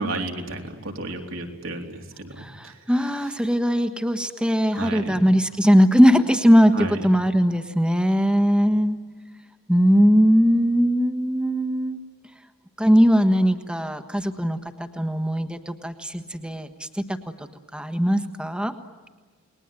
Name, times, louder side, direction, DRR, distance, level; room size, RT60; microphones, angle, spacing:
voice 1, 0.0-3.1 4.7-5.3 6.7-7.0, right 2 dB, 75° right, 2 dB, 3.8 m, -33 dB
voice 2, 2.4-9.0 9.7-12.0 12.8-17.5 17.7-18.7, equal, 5° right, 8 dB, 1.4 m, -20 dB
30.0 x 21.0 x 9.2 m, 1.4 s
head